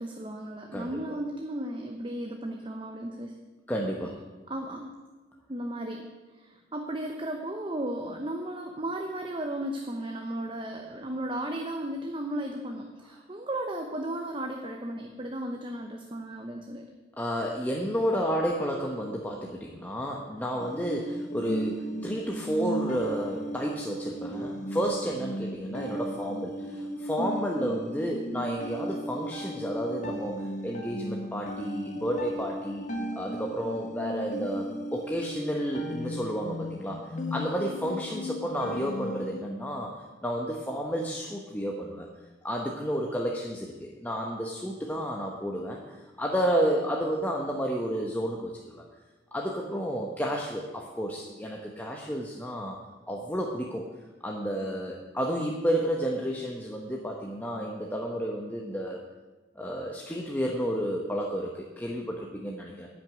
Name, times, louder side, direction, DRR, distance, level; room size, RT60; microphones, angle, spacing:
voice 1, 0.0-3.3 4.5-4.9 5.5-6.1 6.4-16.9, right 1 dB, 25° right, 3 dB, 0.8 m, -35 dB
voice 2, 0.7-1.2 3.7-4.2 17.1-32.9 33.1-42.1 42.4-48.8 49.3-52.8 53.1-53.9 54.2-59.0 59.6-62.9, equal, 10° left, -1 dB, 0.9 m, -31 dB
sound 1, 20.6-39.4, equal, 40° left, 1.2 m, -36 dB
11.0 x 6.2 x 9.2 m, 1.3 s
head